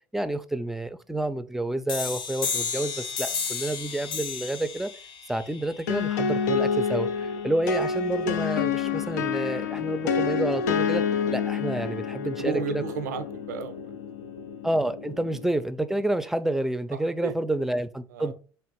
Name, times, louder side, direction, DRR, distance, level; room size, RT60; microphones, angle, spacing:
voice 1, 0.1-4.9 5.3-12.8 14.6-18.3, right 1 dB, 5° right, 0.4 m, -29 dB
sound 1, 1.9-7.3, left 6 dB, 60° left, 0.8 m, -34 dB
sound 2, 5.9-15.5, left 6 dB, 90° left, 0.4 m, -28 dB
voice 2, 12.2-13.9 17.2-17.3 18.1-18.3, right 6 dB, 90° right, 0.4 m, -33 dB
3.4 x 2.5 x 4.5 m
hypercardioid pair, 70°, 9 cm